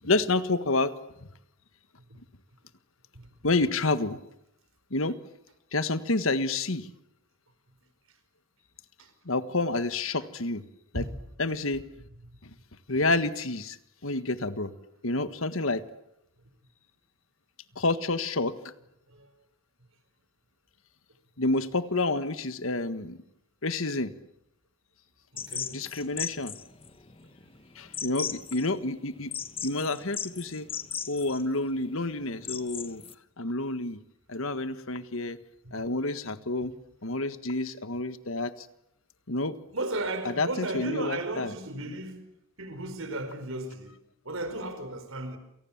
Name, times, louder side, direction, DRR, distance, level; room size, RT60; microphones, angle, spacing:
voice 1, 0.0-0.9 3.4-4.2 4.9-5.1 5.7-6.9 9.2-10.6 10.9-11.0 11.4-11.8 12.4-12.5 12.9-13.8 14.0-14.7 15.0-15.8 17.7-18.5 21.4-23.2 23.6-24.1 25.7-26.5 27.7-29.3 29.6-30.7 31.1-33.0 33.4-34.0 34.3-35.4 35.7-36.7 37.0-38.7 39.3-39.6 40.4-41.5, left 2 dB, 70° left, 1.6 m, -29 dB
voice 2, 12.0-12.4 19.1-19.3 25.3-25.8 27.2-27.5 35.6-35.9 36.6-36.7 39.7-42.3 42.6-44.0 44.2-45.4, right 2 dB, 70° right, 4.9 m, -35 dB
sound 1, 25.4-33.1, left 8 dB, 25° left, 1.2 m, -38 dB
29.0 x 28.0 x 7.4 m
head